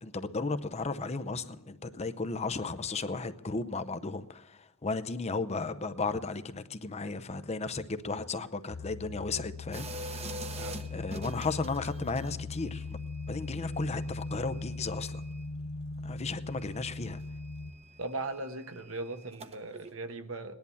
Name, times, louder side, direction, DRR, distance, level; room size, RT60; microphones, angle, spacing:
voice 1, 0.0-10.3 10.9-13.0 13.3-15.2 16.0-17.2, left 3 dB, 30° left, 11 dB, 0.7 m, -35 dB
sound 1, 8.7-17.7, left 3 dB, 65° left, 0.8 m, -40 dB
sound 2, 9.7-12.4 12.7-15.9 16.1-19.9, right 2 dB, 30° right, 1.0 m, -46 dB
voice 2, 18.0-20.6, right 2 dB, 70° right, 8 dB, 1.2 m, -38 dB
18.5 x 11.0 x 7.0 m, 0.96 s
head